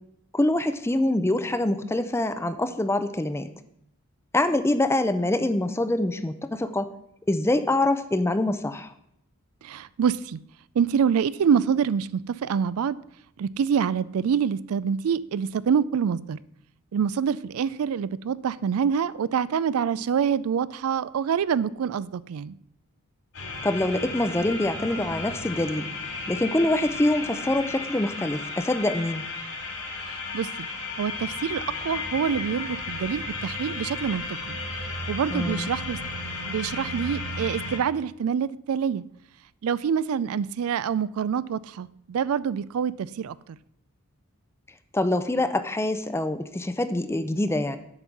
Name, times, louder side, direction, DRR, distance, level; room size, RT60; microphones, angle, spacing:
voice 1, 0.3-3.5 4.3-6.9 7.3-8.9 23.6-25.9 26.3-29.2 35.3-35.7 44.9-47.8, left 1 dB, 10° left, 11 dB, 0.4 m, -25 dB
voice 2, 9.6-10.4 10.8-13.0 13.4-16.4 16.9-22.6 30.3-30.7 31.0-34.6 35.1-36.0 36.5-39.0 39.6-43.4, right 7 dB, 75° right, 18 dB, 0.4 m, -26 dB
sound 1, 23.3-37.8, left 3 dB, 60° left, 2.4 m, -34 dB
7.9 x 5.4 x 7.4 m, 0.74 s
head